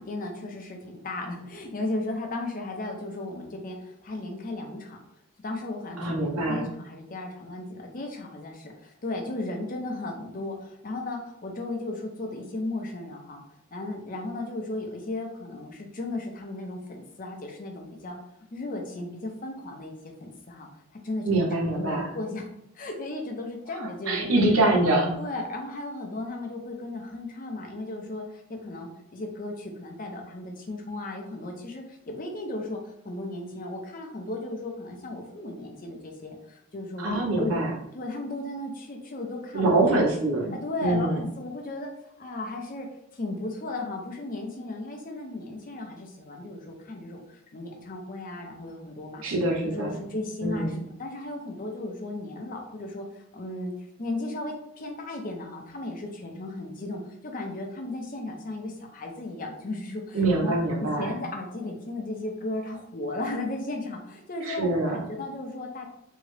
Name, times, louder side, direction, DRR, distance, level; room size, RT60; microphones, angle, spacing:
voice 1, 0.0-5.0 5.4-6.1 6.5-13.4 13.7-18.2 18.5-22.5 22.7-24.5 25.2-37.7 37.9-39.8 40.5-49.2 49.6-53.7 54.0-60.5 60.8-65.9, left 2 dB, 40° left, 2 dB, 0.5 m, -35 dB
voice 2, 6.0-6.7 21.3-22.1 24.1-25.1 37.0-37.7 39.5-40.5 40.8-41.2 49.2-50.0 50.4-50.8 60.1-61.2 64.4-65.0, right 2 dB, 85° right, -1 dB, 0.8 m, -24 dB
3.6 x 2.1 x 3.2 m, 0.80 s
head